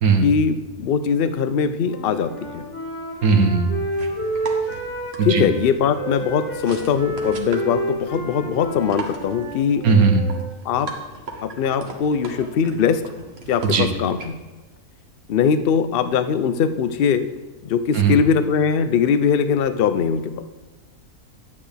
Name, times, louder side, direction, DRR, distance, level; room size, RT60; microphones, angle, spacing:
voice 1, 0.2-2.7 5.2-9.8 10.6-10.9 11.4-13.0 13.5-14.3 15.3-17.3 17.6-20.4, left 6 dB, 60° left, 11 dB, 0.6 m, -21 dB
Wind instrument woodwind instrument, 1.8-5.6 5.9-10.5, right 1 dB, 5° left, 1.9 m, -29 dB
voice 2, 3.2-3.7 5.2-5.4 9.8-10.2 13.6-13.9 17.9-18.1, right 5 dB, 70° right, 6 dB, 1.5 m, -17 dB
sound 1, 3.9-14.3, right 3 dB, 45° right, 1.3 m, -39 dB
11.0 x 8.5 x 3.4 m, 1.2 s
omnidirectional pair, 1.6 m